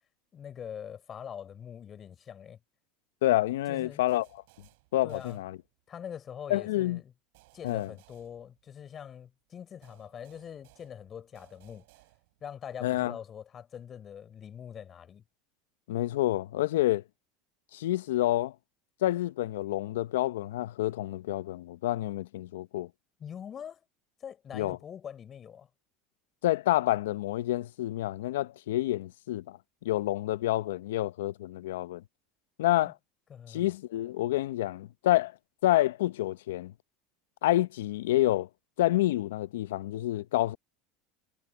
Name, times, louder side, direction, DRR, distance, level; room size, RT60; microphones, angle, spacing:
voice 1, 0.3-2.6 3.7-4.0 5.0-5.4 5.9-7.1 7.5-11.8 12.4-15.2 23.2-23.8 24.2-25.7 32.8-32.9 33.3-33.7, left 8 dB, 35° left, 5.9 m, -43 dB
voice 2, 3.2-4.3 4.9-5.6 6.5-7.0 7.6-7.9 12.8-13.2 15.9-17.0 17.7-18.5 19.0-22.9 24.5-24.8 26.4-32.0 32.6-32.9 33.5-35.3 35.6-36.7 37.4-38.5 38.8-40.6, left 15 dB, 85° left, 0.6 m, -28 dB
sound 1, 4.1-6.0 7.3-9.1 9.8-12.6, right 24 dB, 75° right, 4.2 m, -62 dB
supercardioid pair, 95°, 0 cm